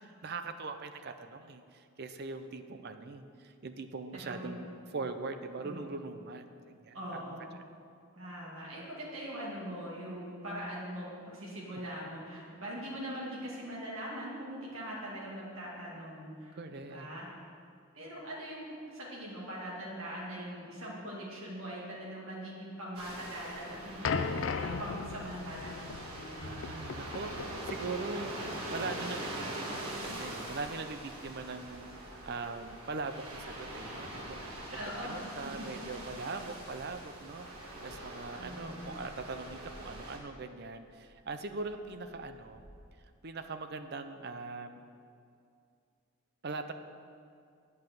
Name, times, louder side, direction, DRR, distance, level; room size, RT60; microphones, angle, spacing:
voice 1, 0.0-7.2 7.5-7.6 16.5-17.1 26.4-34.6 35.0-42.6 43.2-44.9 46.4-46.7, right 3 dB, 50° right, 9 dB, 0.5 m, -41 dB
voice 2, 4.1-4.7 5.6-5.9 6.9-7.4 8.2-17.3 17.9-25.8 26.1-26.5 34.7-35.3 35.6-35.7 38.4-38.8, equal, 70° right, -6 dB, 2.2 m, -42 dB
sound 1, 22.9-40.2, right 1 dB, 90° right, 1.7 m, -43 dB
sound 2, 24.0-29.5, left 5 dB, 60° left, 0.4 m, -38 dB
sound 3, 29.8-43.0, equal, 20° right, 2.0 m, -60 dB
9.0 x 5.6 x 7.7 m, 2.4 s
head